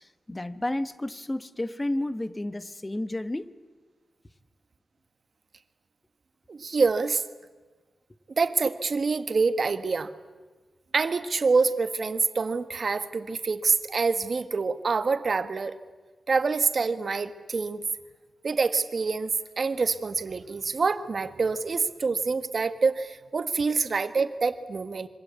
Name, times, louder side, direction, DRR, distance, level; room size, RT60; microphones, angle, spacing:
voice 1, 0.0-3.5, left 1 dB, 15° left, 13 dB, 1.1 m, -31 dB
voice 2, 6.5-7.2 8.4-10.1 10.9-15.7 16.3-17.8 18.4-19.3 19.6-25.1, right 4 dB, 50° right, 10 dB, 1.5 m, -26 dB
26.0 x 24.0 x 8.4 m, 1.3 s
wide cardioid pair, 120°, 0 cm